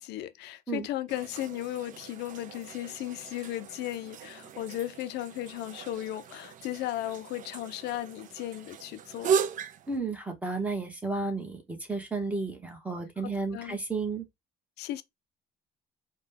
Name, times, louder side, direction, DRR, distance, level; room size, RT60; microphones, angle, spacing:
voice 1, 0.0-9.3 13.2-13.8 14.8-15.0, left 14 dB, 80° left, 0.5 m, -36 dB
sound 1, 1.1-10.0, right 7 dB, 50° right, 0.4 m, -36 dB
voice 2, 9.9-14.2, right 3 dB, 10° right, 1.2 m, -32 dB
4.1 x 2.2 x 3.4 m
cardioid pair, 110°, 17 cm